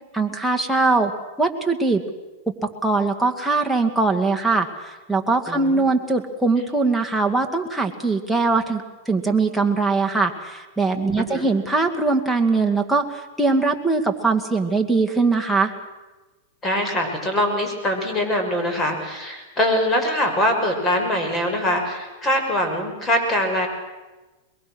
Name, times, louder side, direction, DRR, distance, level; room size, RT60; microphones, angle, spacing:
voice 1, 0.1-1.1 1.4-2.0 2.5-15.7, right 3 dB, ahead, 0 dB, 2.2 m, -21 dB
voice 2, 5.5-5.8 11.2-11.5 16.6-23.7, left 1 dB, 20° left, 4 dB, 5.8 m, -23 dB
22.5 x 22.5 x 6.4 m, 1.2 s
hypercardioid pair, 125°, 0 cm